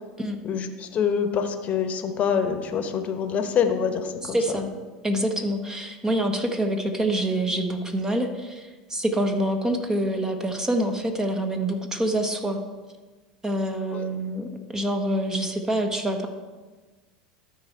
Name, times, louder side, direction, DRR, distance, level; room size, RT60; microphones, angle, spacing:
voice 1, 0.4-4.6 13.9-14.0, left 7 dB, 40° left, 7 dB, 1.1 m, -26 dB
voice 2, 4.2-4.7 5.0-12.6 13.4-16.3, right 1 dB, 15° right, 5 dB, 1.1 m, -26 dB
12.5 x 4.5 x 4.4 m, 1.3 s
hypercardioid pair, 85°, 4 cm